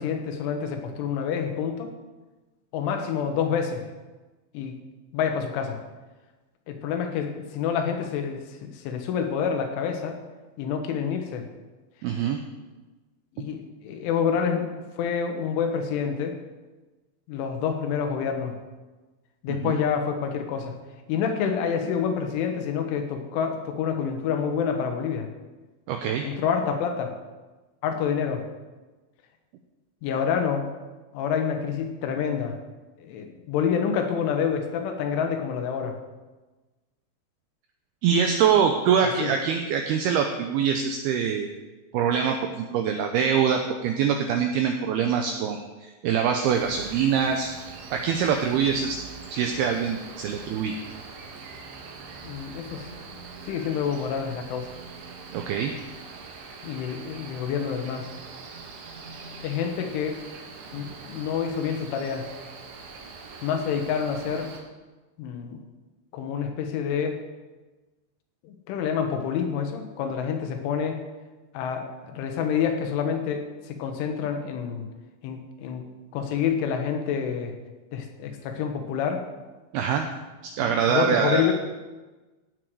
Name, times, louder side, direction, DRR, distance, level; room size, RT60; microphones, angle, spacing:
voice 1, 0.0-1.9 2.7-3.9 4.5-4.8 5.1-5.8 6.7-10.2 10.6-11.5 13.4-14.7 15.0-16.4 17.3-18.6 19.4-20.7 21.1-25.3 26.2-27.2 27.8-28.5 30.0-30.7 31.1-32.6 33.0-36.0 39.0-39.3 52.2-53.2 53.5-54.7 56.6-58.1 59.4-60.2 60.7-62.3 63.4-64.5 65.2-65.6 66.1-67.2 68.4-71.0 71.6-74.9 75.2-75.9 76.1-77.6 77.9-79.2 80.6-81.5, left 7 dB, 85° left, 5 dB, 3.7 m, -28 dB
voice 2, 12.0-12.4 19.5-19.8 25.9-26.3 38.0-41.5 41.9-47.5 47.9-49.0 49.3-50.7 55.3-55.7 79.7-80.0 80.4-81.5, right 7 dB, 90° right, 4 dB, 2.2 m, -24 dB
Cricket, 46.4-64.6, right 4 dB, 70° right, 3.5 m, -43 dB
16.0 x 7.9 x 4.7 m, 1.2 s
omnidirectional pair, 5.4 m